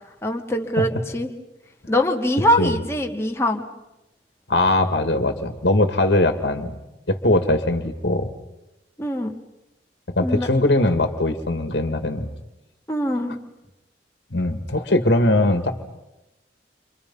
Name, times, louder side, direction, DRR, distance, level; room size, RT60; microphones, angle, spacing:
voice 1, 0.2-1.3 1.9-3.6 9.0-9.3 10.2-10.5 12.9-13.4, equal, 15° left, 2 dB, 1.9 m, -22 dB
voice 2, 4.5-6.7 7.1-8.3 10.2-12.3 14.3-15.7, left 2 dB, 75° left, 7 dB, 1.9 m, -20 dB
30.0 x 26.0 x 5.5 m, 0.96 s
head